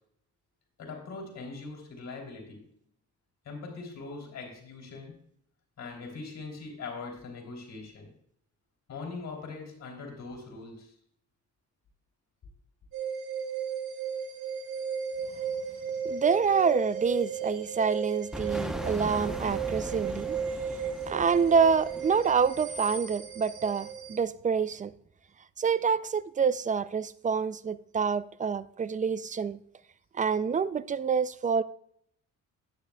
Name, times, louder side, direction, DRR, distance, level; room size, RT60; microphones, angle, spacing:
voice 1, 0.8-2.6 3.4-5.2 5.8-8.1 8.9-10.9, left 4 dB, 60° left, 3.3 m, -41 dB
sound 1, 12.9-24.2, right 6 dB, 85° right, 2.1 m, -35 dB
voice 2, 16.0-20.4 21.1-24.9 25.6-29.6 30.1-31.6, right 6 dB, 25° right, 0.4 m, -27 dB
sound 2, 18.3-23.0, equal, ahead, 0.8 m, -39 dB
12.0 x 9.2 x 2.3 m
cardioid pair, 90°, 30 cm